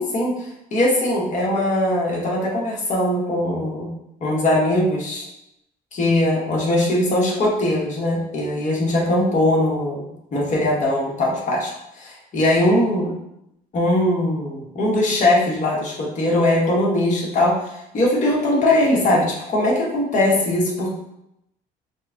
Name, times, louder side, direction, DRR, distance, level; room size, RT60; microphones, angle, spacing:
voice 1, 0.0-3.9 4.2-5.3 5.9-13.1 13.7-20.9, left 1 dB, 45° left, -4 dB, 1.3 m, -20 dB
4.9 x 2.2 x 2.8 m, 0.82 s
cardioid pair, 110°, 17 cm